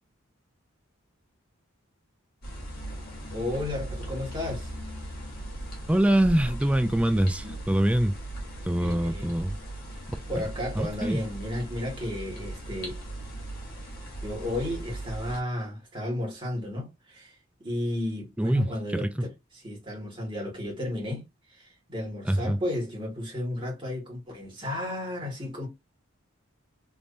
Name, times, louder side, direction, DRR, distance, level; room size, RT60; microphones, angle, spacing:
sound 1, 2.4-15.4, right 1 dB, 45° left, 1.4 m, -38 dB
voice 1, 3.3-4.7 7.4-7.5 8.8-9.3 10.3-13.0 14.2-17.4 17.6-19.1 19.6-21.2 21.5-25.7, left 1 dB, 25° right, 1.7 m, -33 dB
voice 2, 5.9-8.1 8.7-9.6 10.8-11.2 18.4-19.3 22.2-22.6, right 1 dB, 5° right, 0.3 m, -24 dB
3.5 x 3.0 x 2.6 m
head